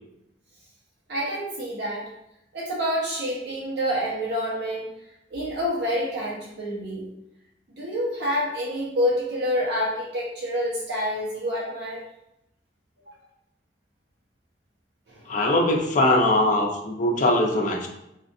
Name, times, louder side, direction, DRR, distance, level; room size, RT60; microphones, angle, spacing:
voice 1, 1.1-2.1 2.5-4.9 5.3-7.1 7.8-12.0 15.1-15.2, equal, 65° right, -5 dB, 0.9 m, -27 dB
voice 2, 15.3-17.9, left 1 dB, 45° left, 1 dB, 0.5 m, -21 dB
4.1 x 2.5 x 2.5 m, 0.83 s
head